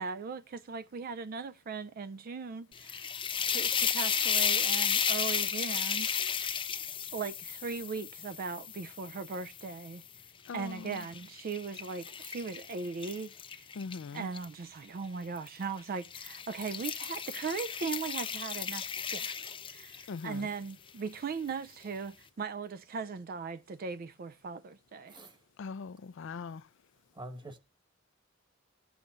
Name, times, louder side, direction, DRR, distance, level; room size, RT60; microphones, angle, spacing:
voice 1, 0.0-3.1 3.5-6.5 7.1-10.0 10.5-13.7 14.1-19.4 19.7-25.2, right 5 dB, 45° right, 0.4 m, -39 dB
sound 1, 2.7-9.9 10.5-14.5 15.4-15.6 16.0-20.2, left 7 dB, 25° left, 0.8 m, -33 dB
voice 2, 10.4-11.1 13.7-14.3 20.1-20.5 25.6-26.7, left 5 dB, 65° left, 0.4 m, -41 dB
voice 3, 25.1-25.4 27.1-27.6, right 1 dB, 25° right, 1.3 m, -45 dB
17.5 x 7.0 x 2.5 m
head